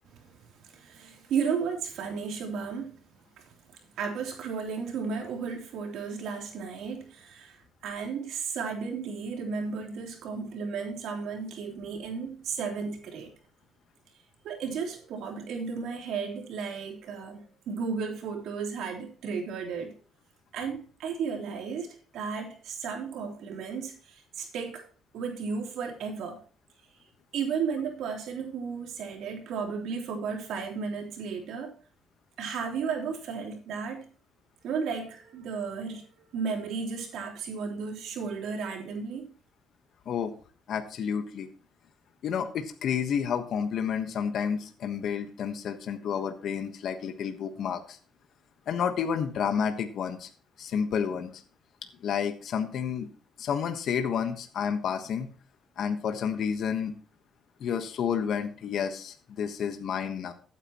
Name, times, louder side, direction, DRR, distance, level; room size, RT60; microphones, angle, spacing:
voice 1, 0.7-3.0 4.0-7.5 7.8-13.3 14.4-19.9 20.5-21.9 22.1-23.9 24.4-24.8 25.1-26.4 27.3-31.7 32.4-34.0 34.6-36.0 36.3-39.3, right 5 dB, 80° right, 3.2 m, -34 dB
voice 2, 40.7-41.5 42.2-48.0 48.7-50.3 50.6-51.4 52.0-53.1 53.4-55.3 55.8-56.9 57.6-60.3, left 7 dB, 70° left, 1.3 m, -30 dB
15.0 x 9.0 x 3.0 m
cardioid pair, 90°, 0 cm